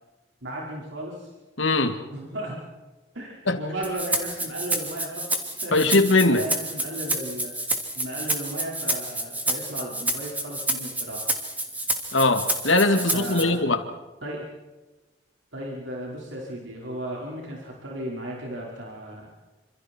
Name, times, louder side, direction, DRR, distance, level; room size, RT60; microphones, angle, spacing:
voice 1, 0.4-1.3 2.1-2.6 3.1-5.3 5.6-5.8 6.3-7.5 8.0-11.2 13.1-13.7 14.2-14.5 15.5-19.3, right 1 dB, 85° right, -3 dB, 5.2 m, -35 dB
voice 2, 1.6-2.0 3.5-3.6 5.7-6.4 12.1-13.8, left 2 dB, 85° left, 7 dB, 2.5 m, -20 dB
Rattle (instrument), 3.8-13.4, right 1 dB, 10° right, 2.9 m, -29 dB
28.0 x 27.5 x 4.6 m, 1.1 s
head